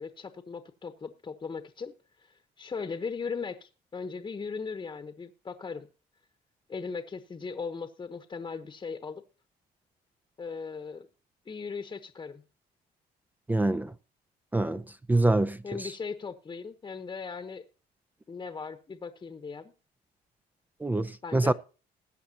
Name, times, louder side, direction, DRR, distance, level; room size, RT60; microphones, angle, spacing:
voice 1, 0.0-1.9 2.2-5.9 6.7-9.2 10.4-11.1 11.5-12.4 15.6-17.7 18.3-19.7 21.2-21.5, left 5 dB, 25° left, 1.0 m, -38 dB
voice 2, 13.5-13.9 14.5-14.8 15.1-15.9 20.8-21.5, right 2 dB, 10° right, 0.4 m, -25 dB
20.5 x 8.5 x 2.8 m
cardioid pair, 110°, 17 cm